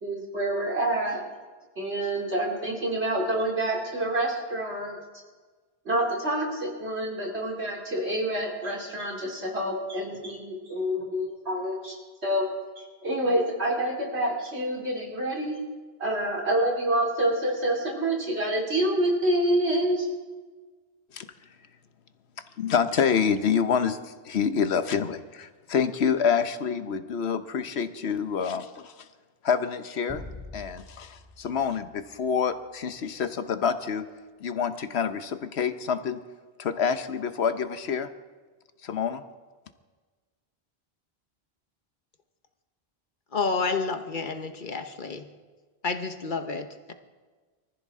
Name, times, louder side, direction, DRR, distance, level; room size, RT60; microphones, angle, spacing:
voice 1, 0.0-1.2 1.8-5.0 5.9-12.0 12.2-12.5 13.0-15.6 16.0-20.1, right 1 dB, 90° right, -1 dB, 3.4 m, -27 dB
voice 2, 22.6-28.9 29.4-30.2 30.5-34.0 34.4-36.2 36.6-38.1 38.8-39.2, left 6 dB, 85° left, 10 dB, 1.2 m, -27 dB
sound 1, 30.1-32.7, left 1 dB, 10° left, 3.5 m, -45 dB
voice 3, 43.3-45.3 45.8-46.9, left 4 dB, 50° left, 7 dB, 1.2 m, -30 dB
24.0 x 14.5 x 3.7 m, 1.4 s
omnidirectional pair, 1.1 m